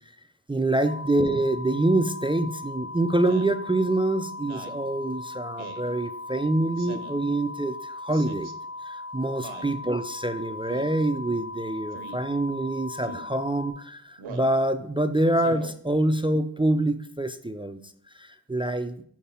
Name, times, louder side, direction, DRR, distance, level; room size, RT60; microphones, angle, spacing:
voice 1, 0.5-8.5 8.8-17.8 18.1-19.0, right 1 dB, 10° right, 9 dB, 0.4 m, -26 dB
sound 1, 0.8-13.7, left 2 dB, 35° left, 1.4 m, -38 dB
Speech synthesizer, 3.3-3.6 4.4-4.8 5.6-5.9 6.8-7.2 8.1-8.5 9.4-9.7 10.7-11.0 11.9-12.2 13.0-13.3 14.2-14.5 15.3-15.7, right 4 dB, 80° right, 0.9 m, -41 dB
7.0 x 4.6 x 4.3 m, 0.62 s
cardioid pair, 65°, 46 cm